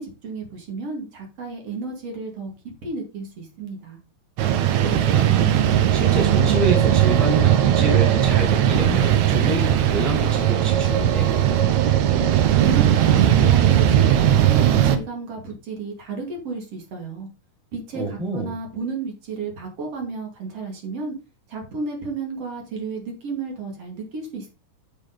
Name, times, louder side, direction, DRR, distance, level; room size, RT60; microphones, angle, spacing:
voice 1, 0.0-2.5 2.8-4.0 12.4-17.3 17.7-21.1 21.5-24.5, right 3 dB, 55° right, 1 dB, 3.3 m, -32 dB
sound 1, 4.4-15.0, right 11 dB, 75° right, 2.2 m, -18 dB
voice 2, 4.8-5.5 5.9-11.3 17.9-18.5, right 1 dB, ahead, 0 dB, 1.8 m, -27 dB
8.3 x 6.7 x 4.0 m, 0.30 s
omnidirectional pair, 3.3 m